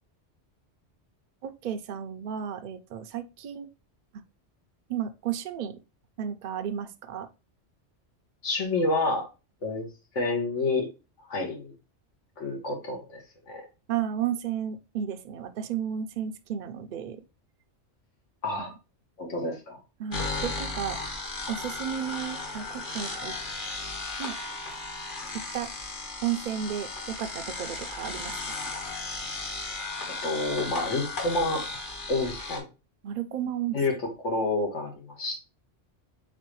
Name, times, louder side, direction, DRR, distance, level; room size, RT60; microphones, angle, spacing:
voice 1, 1.4-3.7 4.9-5.8 6.2-7.3 13.9-17.2 20.0-21.0 21.5-23.4 24.2-24.4 25.3-25.7 26.2-28.3 33.0-34.0, right 9 dB, 60° right, 0.5 m, -33 dB
voice 2, 8.4-9.3 9.6-9.9 10.1-10.9 11.3-11.7 12.4-13.6 18.4-18.7 19.2-19.8 30.2-31.6 32.1-32.7 33.7-33.9 34.2-35.4, left 2 dB, 90° left, 1.6 m, -28 dB
sound 1, 20.1-32.6, left 3 dB, 45° left, 1.1 m, -35 dB
4.1 x 3.7 x 3.0 m
omnidirectional pair, 1.2 m